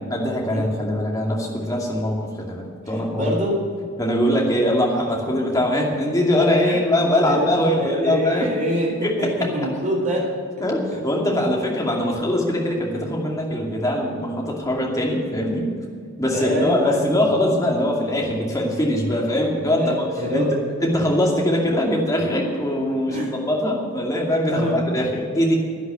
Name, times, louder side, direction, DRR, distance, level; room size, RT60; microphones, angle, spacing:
voice 1, 0.1-3.3 4.0-8.5 9.0-9.3 10.6-15.7 16.2-20.1 20.3-20.5 20.8-25.5, left 1 dB, 15° left, -2 dB, 2.5 m, -22 dB
voice 2, 2.9-3.6 6.6-6.8 7.1-8.9 9.2-9.3 9.5-10.2 16.3-17.0 19.8-20.6 23.1-23.3 24.5-24.9, equal, 35° right, -2 dB, 4.1 m, -25 dB
11.5 x 10.0 x 8.0 m, 2.2 s
head